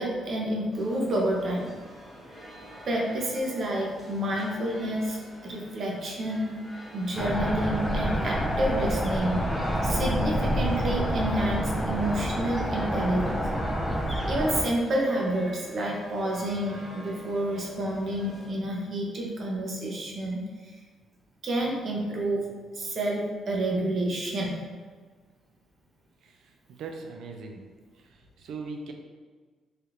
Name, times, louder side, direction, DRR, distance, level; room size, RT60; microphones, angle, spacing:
voice 1, 0.0-1.7 2.9-5.2 5.4-6.5 6.9-9.4 9.8-13.4 14.3-20.4 21.4-22.4 22.8-24.5, right 1 dB, 50° right, -2 dB, 0.8 m, -29 dB
sound 1, 0.7-18.5, equal, 25° right, 1.0 m, -47 dB
sound 2, 7.2-14.6, equal, 5° left, 0.4 m, -28 dB
voice 2, 26.2-27.7 27.9-28.9, right 4 dB, 70° right, 3 dB, 0.4 m, -40 dB
3.3 x 2.4 x 2.9 m, 1.4 s
cardioid pair, 90°, 0 cm